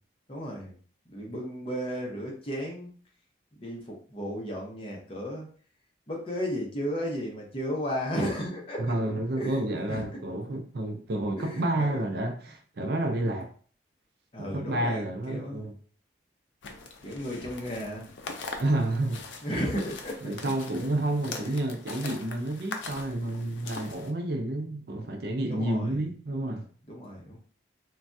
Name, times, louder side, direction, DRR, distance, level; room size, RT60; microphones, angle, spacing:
voice 1, 0.3-0.8 1.1-2.9 3.6-5.5 6.1-8.9 9.4-10.2 11.4-12.0 14.3-15.7 17.0-18.4 19.4-20.5 21.4-21.5 25.5-26.1 26.9-27.4, equal, 30° left, 0.7 m, -34 dB
voice 2, 8.8-13.5 14.4-15.7 18.6-19.2 20.2-26.7, right 1 dB, 55° right, 0.4 m, -30 dB
sound 1, 16.6-24.1, left 4 dB, 75° left, 0.5 m, -42 dB
3.2 x 2.2 x 2.6 m
head